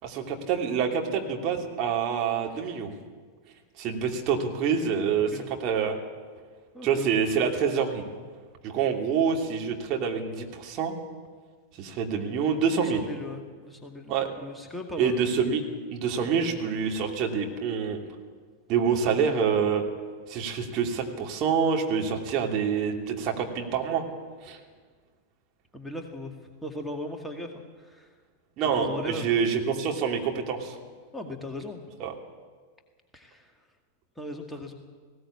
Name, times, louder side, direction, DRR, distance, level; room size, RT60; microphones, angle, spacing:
voice 1, 0.0-2.9 3.8-5.3 5.6-6.0 6.8-8.0 8.6-10.9 11.8-13.0 14.1-14.3 15.0-18.0 18.7-19.8 20.3-24.0 24.4-24.6 28.6-30.7 32.0-32.1, right 6 dB, 40° right, 1 dB, 2.8 m, -26 dB
voice 2, 6.7-7.1 12.8-15.2 25.7-28.1 28.8-29.3 31.1-31.8 33.1-33.5 34.2-34.7, left 1 dB, 5° left, 2 dB, 2.1 m, -38 dB
19.5 x 17.0 x 8.5 m, 1.5 s
figure-of-eight pair, 90°, 0 cm